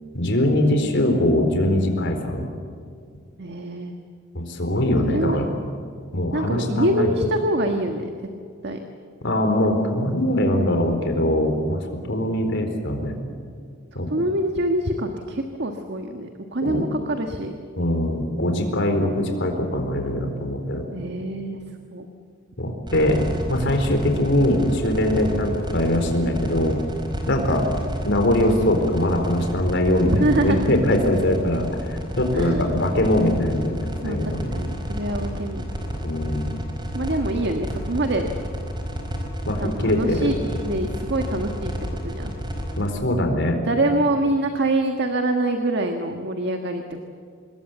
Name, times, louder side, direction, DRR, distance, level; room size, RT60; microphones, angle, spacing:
voice 1, 0.1-2.5 4.3-5.5 6.1-7.1 9.2-13.2 13.9-14.1 16.6-16.8 17.8-20.9 22.6-26.8 27.3-27.6 28.0-33.8 34.0-34.6 36.0-36.5 39.4-40.3 42.7-43.6, left 1 dB, 60° left, 4 dB, 4.2 m, -22 dB
voice 2, 3.4-3.9 5.0-5.4 6.3-8.1 8.6-8.8 14.1-17.5 20.9-21.6 21.9-22.1 27.3-27.6 30.1-30.6 32.3-32.7 34.0-35.7 36.9-38.3 39.6-40.4 40.6-41.7 42.0-42.3 43.7-47.0, right 1 dB, 60° right, 5 dB, 1.6 m, -25 dB
sound 1, 22.9-42.9, equal, 25° right, 4.8 m, -30 dB
26.5 x 21.0 x 8.0 m, 2.2 s
head